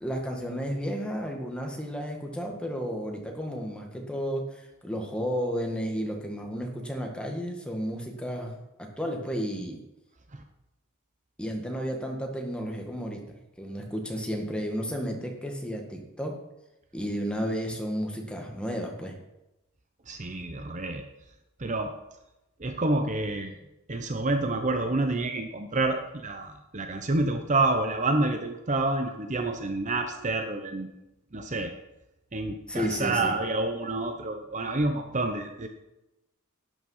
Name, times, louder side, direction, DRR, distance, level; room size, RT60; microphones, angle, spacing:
voice 1, 0.0-4.4 4.8-9.8 11.4-13.2 13.6-16.4 16.9-19.1 32.7-33.3, equal, 5° left, 1 dB, 1.7 m, -32 dB
voice 2, 20.1-21.0 21.6-21.9 22.6-23.6 23.9-30.9 31.3-31.7 32.3-35.7, right 2 dB, 35° right, 6 dB, 0.8 m, -28 dB
12.0 x 9.3 x 5.6 m, 0.94 s
head